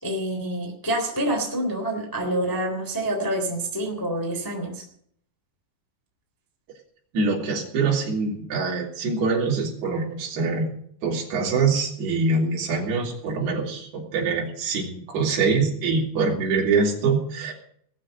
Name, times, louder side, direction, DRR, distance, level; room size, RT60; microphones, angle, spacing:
voice 1, 0.0-4.8, right 1 dB, 5° left, 1 dB, 2.4 m, -27 dB
voice 2, 7.1-10.7 11.0-17.5, right 4 dB, 60° right, -2 dB, 5.3 m, -24 dB
19.0 x 7.7 x 7.8 m, 0.65 s
omnidirectional pair, 5.3 m